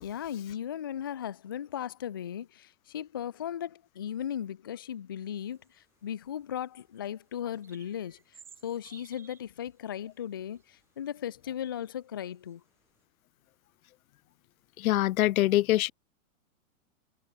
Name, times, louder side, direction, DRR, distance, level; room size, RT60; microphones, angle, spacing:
voice 1, 0.0-12.6, left 9 dB, 20° left, 0.4 m, -37 dB
sound 1, 5.4-11.4 11.8-13.0, right 7 dB, 5° right, 0.7 m, -58 dB
voice 2, 14.8-15.9, left 16 dB, 80° left, 0.6 m, -24 dB
supercardioid pair, 170°, 41 cm